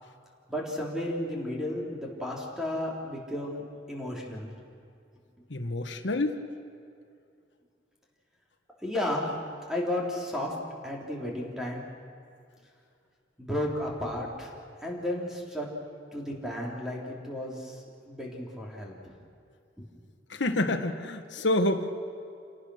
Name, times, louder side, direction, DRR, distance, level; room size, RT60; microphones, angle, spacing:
voice 1, 0.5-3.6 3.9-4.5 8.8-9.4 9.7-10.5 10.8-11.8 13.4-14.5 14.8-15.7 16.1-17.8 18.1-18.9 19.8-19.9, left 1 dB, 5° right, -3 dB, 3.8 m, -33 dB
voice 2, 5.5-6.3 20.3-21.9, left 2 dB, 70° left, 4 dB, 1.4 m, -27 dB
28.5 x 18.5 x 6.5 m, 2.4 s
head